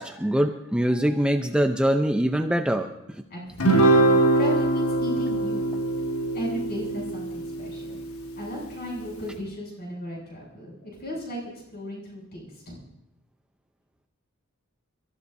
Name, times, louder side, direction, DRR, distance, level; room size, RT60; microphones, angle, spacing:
voice 1, 0.0-2.9 3.7-3.8, equal, 5° right, 5 dB, 0.7 m, -23 dB
voice 2, 3.3-3.8 4.3-5.9 6.3-8.0 8.4-11.4 11.7-12.8, equal, 50° left, -3 dB, 7.7 m, -36 dB
Guitar, 3.6-8.2, right 2 dB, 85° left, 1.7 m, -22 dB
29.5 x 14.5 x 2.7 m, 0.84 s
head